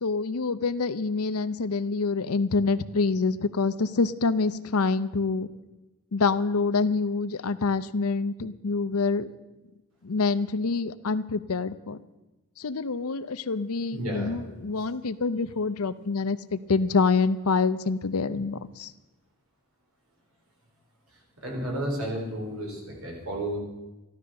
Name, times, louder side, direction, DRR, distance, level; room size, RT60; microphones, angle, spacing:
voice 1, 0.0-5.5 6.1-9.3 10.0-12.0 12.6-18.9, left 4 dB, 80° left, 14 dB, 0.7 m, -26 dB
voice 2, 13.9-14.3 21.4-23.6, right 1 dB, 70° right, 0 dB, 4.6 m, -32 dB
13.5 x 12.5 x 6.6 m, 1.1 s
head